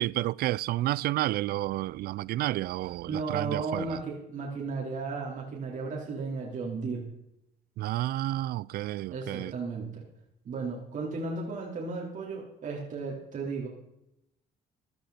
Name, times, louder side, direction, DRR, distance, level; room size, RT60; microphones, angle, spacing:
voice 1, 0.0-4.0 7.8-9.5, right 15 dB, 65° right, 0.4 m, -30 dB
voice 2, 3.1-7.1 9.1-10.0 10.4-13.7, right 4 dB, 50° right, 3.9 m, -34 dB
15.0 x 11.5 x 4.3 m
cardioid pair, 110°, 17 cm